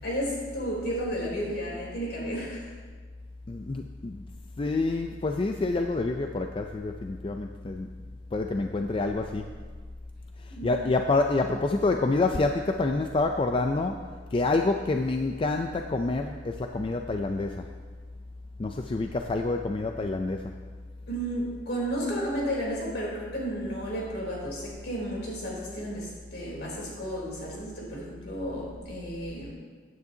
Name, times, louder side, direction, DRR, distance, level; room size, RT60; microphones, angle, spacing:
voice 1, 0.0-2.7 10.5-10.7 21.1-29.5, equal, 65° left, -4 dB, 3.5 m, -33 dB
voice 2, 3.5-4.2 4.6-7.9 8.3-9.5 10.4-14.0 14.3-17.7 18.6-20.5, left 3 dB, 30° left, 5 dB, 0.4 m, -27 dB
15.0 x 9.4 x 2.8 m, 1.5 s
head